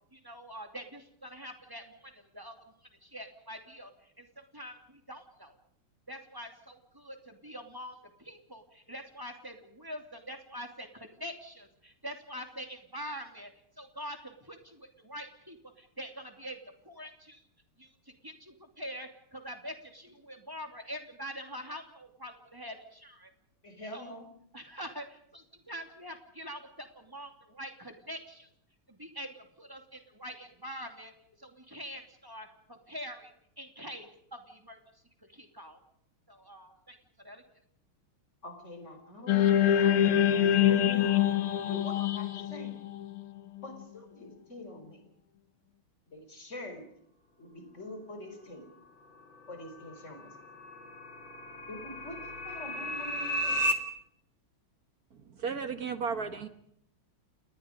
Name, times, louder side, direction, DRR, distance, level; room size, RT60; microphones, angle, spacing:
voice 1, 0.1-2.5 3.0-3.9 4.2-5.5 6.1-13.5 13.8-16.6 16.8-17.4 17.8-17.9 18.2-23.3 23.9-24.2 24.5-28.5 28.9-31.1 31.4-33.3 33.6-34.8 35.3-35.8 36.3-37.0 37.2-37.4, equal, 10° right, 4 dB, 2.6 m, -44 dB
voice 2, 23.6-24.3 38.4-41.1 41.6-42.7 43.6-45.0 46.1-46.9 47.4-48.6 49.5-50.3 51.7-53.6, left 1 dB, 30° left, 5 dB, 5.0 m, -44 dB
sound 1, 39.3-43.6, left 10 dB, 80° left, 2.0 m, -25 dB
sound 2, 49.4-53.7, equal, 60° left, 2.8 m, -34 dB
voice 3, 55.4-56.5, right 5 dB, 50° right, 9 dB, 1.7 m, -33 dB
29.0 x 20.0 x 5.2 m, 0.72 s
omnidirectional pair, 2.4 m